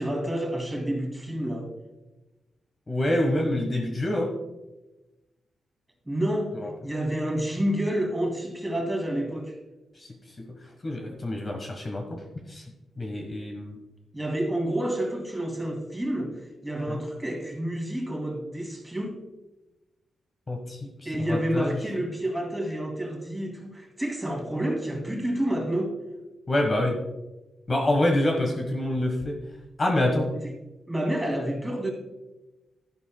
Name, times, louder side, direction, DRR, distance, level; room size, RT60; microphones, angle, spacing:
voice 1, 0.0-1.7 6.1-6.5 6.8-9.6 14.1-16.3 16.6-19.1 21.0-25.9 30.9-31.9, right 1 dB, 10° right, 2 dB, 2.6 m, -29 dB
voice 2, 2.9-4.3 6.5-6.7 9.9-12.2 12.5-12.6 13.0-13.8 16.9-17.0 20.5-21.8 26.5-27.0 27.7-29.4 29.8-30.3, left 1 dB, 30° left, 2 dB, 1.4 m, -27 dB
13.0 x 11.0 x 2.3 m, 1.0 s
cardioid pair, 110°, 0 cm